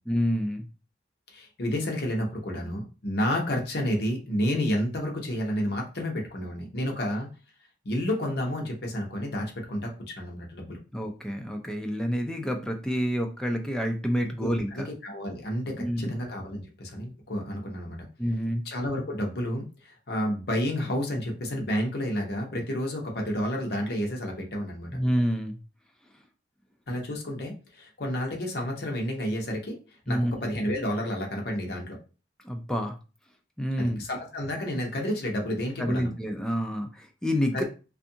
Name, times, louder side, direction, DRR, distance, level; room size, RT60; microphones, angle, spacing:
voice 1, 0.1-0.7 10.9-14.9 15.8-16.2 18.2-18.6 24.9-25.6 30.1-30.5 32.4-33.0 33.6-34.0 35.8-37.6, equal, 5° left, 3 dB, 0.3 m, -28 dB
voice 2, 1.3-7.3 7.8-10.8 14.4-18.0 18.6-24.9 26.9-29.8 30.1-32.0 33.8-36.1 37.5-37.6, equal, 60° left, 1 dB, 0.7 m, -30 dB
2.6 x 2.4 x 2.6 m, 0.34 s
head